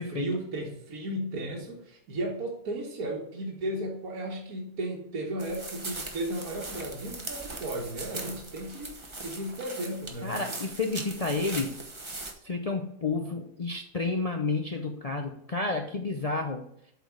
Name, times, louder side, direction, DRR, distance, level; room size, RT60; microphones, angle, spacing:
voice 1, 0.0-10.5, right 1 dB, 60° right, -2 dB, 1.8 m, -35 dB
sound 1, 5.4-12.3, right 2 dB, 20° right, 0.9 m, -40 dB
voice 2, 10.2-11.9 12.4-16.6, left 3 dB, 80° left, 3 dB, 0.3 m, -30 dB
8.0 x 4.6 x 4.7 m, 0.74 s
omnidirectional pair, 1.8 m